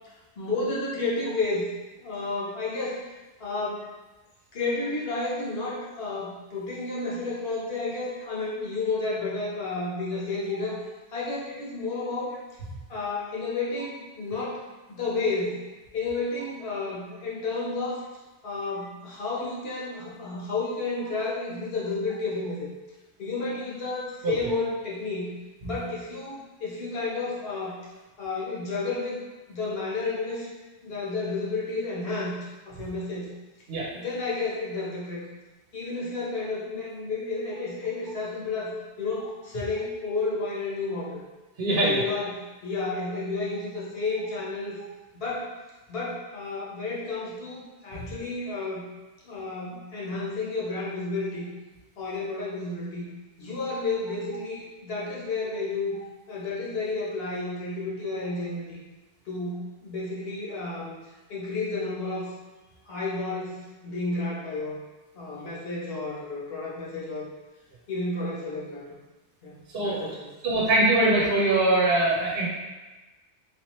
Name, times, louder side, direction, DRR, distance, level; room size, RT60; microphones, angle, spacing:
voice 1, 0.4-1.6 2.0-3.0 3.4-3.9 4.5-10.8 11.1-12.4 12.9-14.6 14.9-15.6 15.9-18.0 18.4-22.7 23.2-25.3 25.6-27.8 28.2-29.2 29.5-30.5 30.8-33.3 33.9-35.2 35.7-41.2 41.7-44.8 45.1-45.5 45.9-48.8 49.2-51.4 52.0-53.0 53.4-56.0 56.3-58.8 59.3-60.9 61.3-62.3 62.9-64.8 65.1-67.3 67.9-69.0 69.4-70.3, left 3 dB, 60° left, -5 dB, 1.1 m, -31 dB
voice 2, 41.6-42.0 69.7-70.1 70.4-72.5, right 2 dB, 60° right, -6 dB, 1.0 m, -22 dB
3.5 x 3.1 x 3.0 m, 1.2 s
omnidirectional pair, 1.2 m